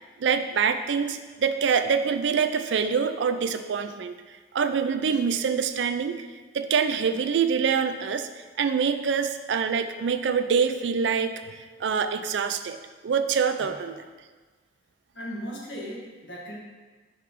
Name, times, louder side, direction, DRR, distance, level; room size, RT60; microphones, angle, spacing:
voice 1, 0.2-4.1 4.5-6.2 6.5-8.3 8.6-11.5 11.8-12.8 13.0-14.0, right 6 dB, 80° right, 9 dB, 0.4 m, -25 dB
voice 2, 15.1-16.6, equal, 80° left, -3 dB, 1.4 m, -37 dB
5.8 x 3.2 x 5.1 m, 1.4 s
head